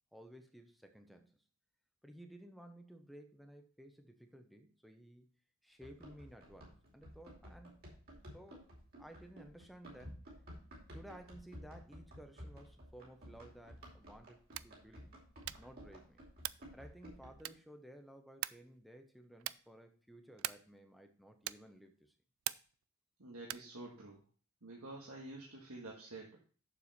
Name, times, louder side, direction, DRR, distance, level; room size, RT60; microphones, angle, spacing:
voice 1, 0.1-1.4 2.0-5.3 5.6-7.9 8.3-8.7 9.0-10.2 10.9-15.2 15.6-16.2 16.7-22.1, right 1 dB, ahead, 5 dB, 0.8 m, -56 dB
Run, 5.8-17.5, equal, 40° right, 2.7 m, -54 dB
sound 1, 14.4-14.8 15.4-15.8 16.4-16.7 17.4-17.8 18.4-18.7 19.4-19.7 20.4-20.8 21.4-21.8 22.4-22.8 23.4-23.8, right 15 dB, 70° right, 0.3 m, -43 dB
voice 2, 23.2-24.2 24.6-26.4, right 2 dB, 85° right, -2 dB, 1.7 m, -49 dB
7.1 x 6.8 x 4.2 m, 0.41 s
head